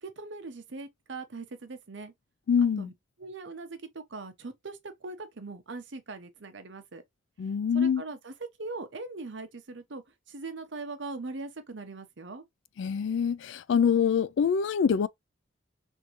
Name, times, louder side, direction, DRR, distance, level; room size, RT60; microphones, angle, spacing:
voice 1, 0.0-2.1 2.8-2.9 3.2-7.0 7.7-10.0 10.3-12.4, right 3 dB, 65° right, 0.8 m, -40 dB
voice 2, 2.5-2.9 7.4-8.0 12.8-15.1, left 7 dB, 65° left, 0.3 m, -25 dB
3.6 x 2.6 x 3.0 m
head